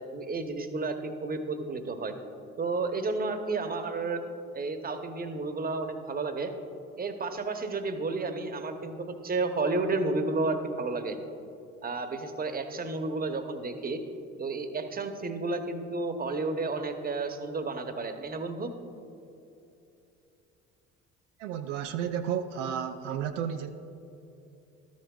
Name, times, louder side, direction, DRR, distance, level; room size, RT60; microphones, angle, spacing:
voice 1, 0.1-2.1 2.6-4.2 4.5-6.5 7.0-11.2 11.8-14.0 14.4-18.7, right 3 dB, 25° right, 7 dB, 0.9 m, -31 dB
voice 2, 21.4-23.7, right 8 dB, 80° right, 6 dB, 0.5 m, -32 dB
12.5 x 10.5 x 2.4 m, 2.8 s
hypercardioid pair, 60°, 37 cm